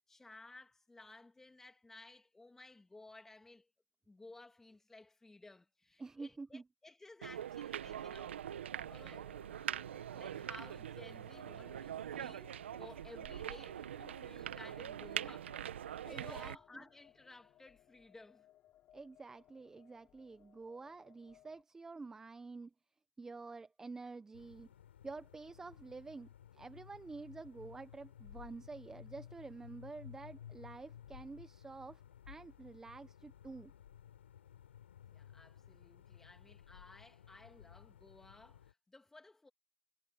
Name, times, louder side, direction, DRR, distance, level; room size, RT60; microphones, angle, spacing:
voice 1, 0.0-3.7 4.1-9.3 10.1-15.8 16.0-18.5 35.1-39.5, left 2 dB, 5° left, 2.7 m, -57 dB
voice 2, 6.0-6.6 16.0-16.6 18.9-22.7 23.2-24.7 25.0-32.0 32.3-33.7, right 3 dB, 10° right, 0.9 m, -49 dB
sound 1, 7.2-16.6, right 10 dB, 85° right, 1.3 m, -43 dB
sound 2, 7.8-21.6, left 13 dB, 30° left, 7.1 m, -65 dB
sound 3, 24.3-38.7, left 10 dB, 85° left, 7.5 m, -56 dB
hypercardioid pair, 140°, 6 cm